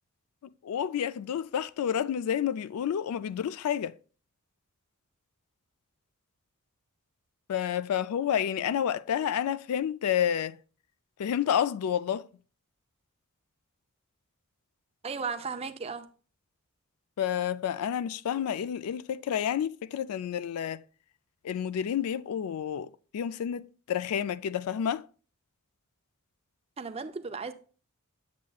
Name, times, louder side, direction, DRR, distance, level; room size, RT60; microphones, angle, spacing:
voice 1, 0.6-3.9 7.5-10.6 11.2-12.3 17.2-20.8 21.4-25.0, left 9 dB, 80° left, 0.3 m, -30 dB
voice 2, 15.0-16.1 26.8-27.5, right 5 dB, 25° right, 0.5 m, -35 dB
7.4 x 7.4 x 2.3 m
head